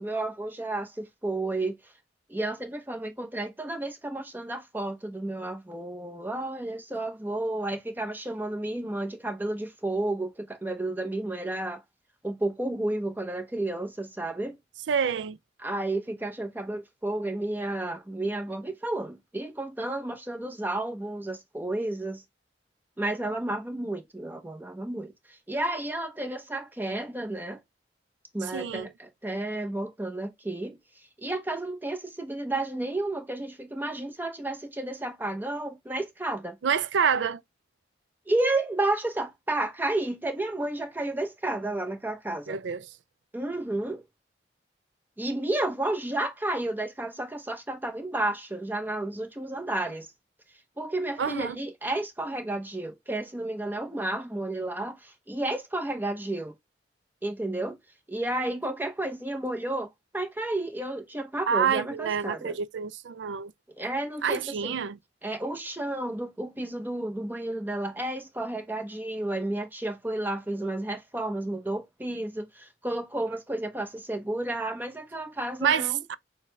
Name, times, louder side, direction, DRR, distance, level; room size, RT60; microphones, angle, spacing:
voice 1, 0.0-1.7 2.3-11.8 12.2-14.6 15.6-22.2 23.0-27.6 28.3-30.8 31.2-36.6 38.3-42.6 43.3-44.0 45.2-50.1 50.8-56.5 57.2-57.8 58.1-59.9 60.1-62.6 63.8-64.7 65.2-76.0, right 2 dB, 10° right, 0.8 m, -32 dB
voice 2, 14.9-15.4 28.5-28.9 36.6-37.4 42.5-42.8 51.2-51.6 61.5-63.5 64.2-65.0 75.6-76.1, right 7 dB, 85° right, 0.4 m, -27 dB
6.5 x 2.2 x 3.2 m
head